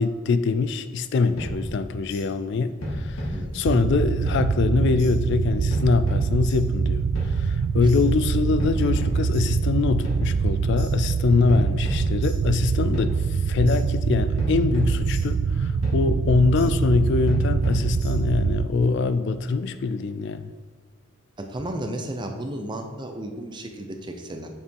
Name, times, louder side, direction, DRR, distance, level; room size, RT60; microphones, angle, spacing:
voice 1, 0.0-20.5, left 4 dB, 55° left, 12 dB, 0.3 m, -24 dB
sound 1, 1.4-2.2 2.8-4.0 4.3-5.1 5.7-6.8 7.1-8.0 8.6-9.7 10.0-10.9 11.5-12.7 12.9-13.8 14.4-15.5 15.8-16.7 17.3-18.4, equal, 85° left, 2.1 m, -33 dB
sound 2, 3.6-18.7, right 5 dB, 75° right, 0.3 m, -24 dB
voice 2, 21.4-24.5, right 1 dB, 20° right, 5 dB, 0.6 m, -33 dB
6.7 x 5.8 x 4.6 m, 1.5 s
head